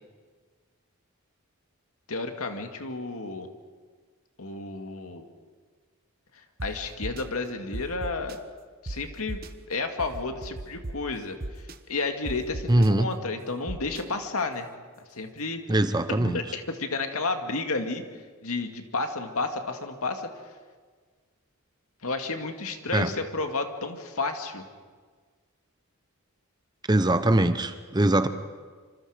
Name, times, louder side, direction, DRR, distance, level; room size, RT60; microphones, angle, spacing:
voice 1, 2.1-3.5 4.4-5.3 6.3-8.4 8.8-9.4 9.7-14.7 15.1-15.6 16.1-18.0 18.4-20.3 22.0-24.7, left 3 dB, 70° left, 5 dB, 2.2 m, -31 dB
sound 1, 6.6-6.7 7.0-7.2 7.7-8.4 8.9-9.0 9.3-9.5 10.0-10.9 11.4-11.8 12.3-12.9 13.7-14.0, right 2 dB, 40° right, 1.0 m, -35 dB
voice 2, 12.7-13.1 15.7-16.4 22.9-23.1 26.9-28.3, right 1 dB, 20° right, 11 dB, 0.8 m, -22 dB
26.5 x 26.0 x 5.1 m, 1.5 s
head